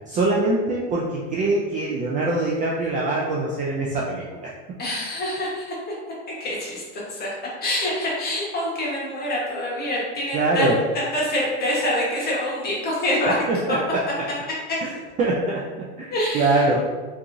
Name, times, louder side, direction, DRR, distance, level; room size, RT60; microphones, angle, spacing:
voice 1, 0.1-4.5 10.3-10.8 13.5-14.0 14.8-14.9 15.2-16.8, right 2 dB, 25° right, -4 dB, 0.4 m, -23 dB
voice 2, 4.8-5.8 6.4-7.3 7.6-13.3 16.1-16.7, left 1 dB, 25° left, -5 dB, 1.3 m, -26 dB
3.6 x 3.0 x 2.6 m, 1.4 s
supercardioid pair, 125°, 35 cm